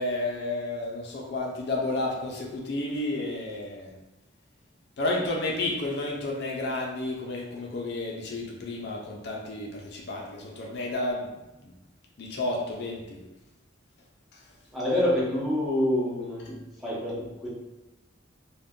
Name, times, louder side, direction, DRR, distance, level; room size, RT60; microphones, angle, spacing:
voice 1, 0.0-3.9 5.0-11.3 12.2-13.0, left 2 dB, 55° left, -1 dB, 0.4 m, -31 dB
voice 2, 14.7-17.5, left 1 dB, ahead, -7 dB, 0.7 m, -27 dB
2.5 x 2.2 x 3.5 m, 1.0 s
head